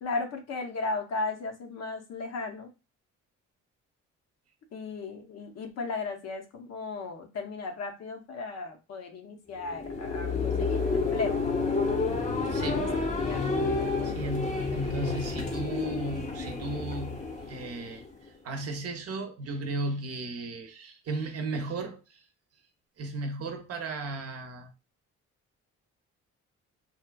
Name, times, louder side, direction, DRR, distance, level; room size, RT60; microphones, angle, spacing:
voice 1, 0.0-2.7 4.7-11.4 12.8-13.4 13.8-14.1, left 3 dB, 60° left, 0.7 m, -36 dB
sound 1, 9.6-18.2, left 4 dB, 25° left, 0.7 m, -30 dB
voice 2, 12.5-13.0 14.0-18.0 18.4-22.2 23.0-24.7, right 2 dB, 55° right, 0.7 m, -35 dB
2.8 x 2.3 x 2.2 m
cardioid pair, 90°, 30 cm